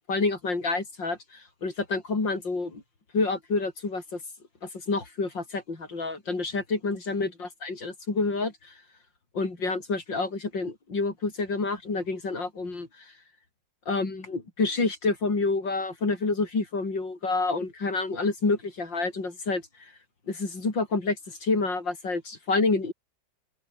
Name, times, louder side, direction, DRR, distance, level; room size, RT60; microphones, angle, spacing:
voice 1, 0.1-2.8 3.1-4.2 4.6-8.7 9.3-13.1 13.9-19.9 20.3-22.9, left 3 dB, 80° left, 5.4 m, -28 dB
open air
omnidirectional pair, 2.0 m